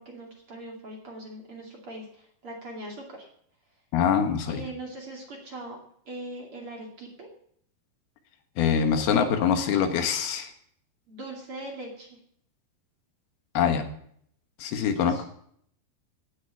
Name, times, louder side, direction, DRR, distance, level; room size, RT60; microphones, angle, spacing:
voice 1, 0.0-3.3 4.5-5.8 6.1-7.3 11.1-12.2 15.0-15.2, right 1 dB, 40° right, -1 dB, 2.9 m, -41 dB
voice 2, 3.9-4.6 8.6-10.5 13.6-13.9 14.6-15.2, left 7 dB, 85° left, 7 dB, 3.4 m, -24 dB
17.0 x 6.7 x 8.4 m, 0.67 s
omnidirectional pair, 4.3 m